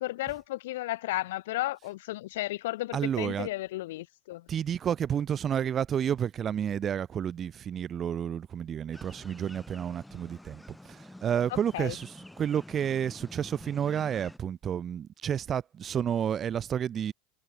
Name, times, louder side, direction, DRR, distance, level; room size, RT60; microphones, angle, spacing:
voice 1, 0.0-4.5 11.7-11.9, left 17 dB, 80° left, 1.6 m, -34 dB
voice 2, 2.9-3.5 4.5-10.6 10.9-17.1, right 9 dB, 25° right, 1.0 m, -30 dB
sound 1, 8.9-14.4, left 1 dB, 5° left, 0.8 m, -49 dB
supercardioid pair, 165°, 0 cm